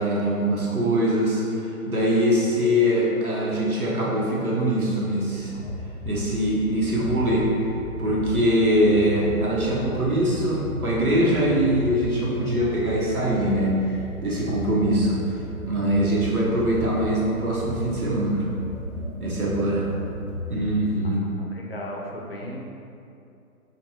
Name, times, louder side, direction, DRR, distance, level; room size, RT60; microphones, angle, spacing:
voice 1, 0.0-5.5 6.0-7.5 8.0-15.2 15.7-18.4 19.2-19.9 20.5-21.3, equal, 75° right, -5 dB, 1.1 m, -23 dB
sound 1, 5.3-21.0, left 1 dB, 40° right, 1.0 m, -35 dB
voice 2, 21.1-22.7, left 1 dB, 45° left, -2 dB, 0.5 m, -36 dB
5.3 x 2.3 x 2.8 m, 2.7 s
figure-of-eight pair, 140°, 44 cm